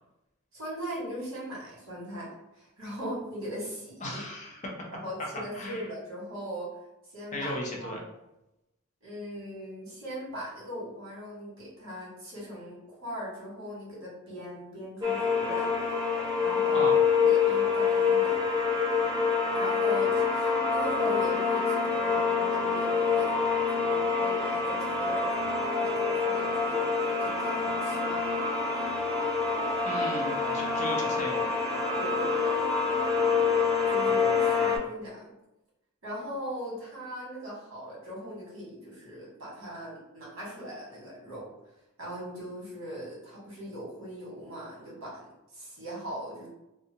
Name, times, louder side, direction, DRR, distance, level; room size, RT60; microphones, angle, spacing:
voice 1, 0.5-2.3 2.5-4.2 4.9-6.7 7.1-8.0 9.0-16.1 16.4-18.5 19.5-23.4 23.7-28.2 31.9-32.5 33.9-35.2 36.0-41.5 42.0-45.2 45.5-46.5, equal, 70° right, -6 dB, 1.4 m, -39 dB
voice 2, 4.0-4.8 5.5-5.8 7.3-8.0 16.7-16.9 29.8-31.5 34.1-34.8, left 1 dB, 35° left, -1 dB, 0.5 m, -36 dB
sound 1, 15.0-34.8, left 5 dB, 15° right, 0.5 m, -26 dB
2.6 x 2.4 x 2.7 m, 0.92 s
head